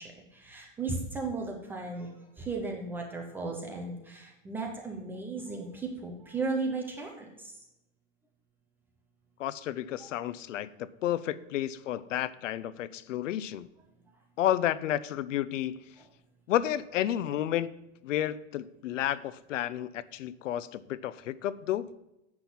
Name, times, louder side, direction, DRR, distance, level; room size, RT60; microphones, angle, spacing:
voice 1, 0.0-2.1 2.4-7.5, right 3 dB, 5° right, 1 dB, 0.3 m, -35 dB
voice 2, 9.4-13.7 14.4-15.8 16.5-17.7 18.0-21.9, left 12 dB, 75° left, 17 dB, 0.6 m, -31 dB
7.7 x 6.0 x 7.0 m, 0.92 s
hypercardioid pair, 145°, 38 cm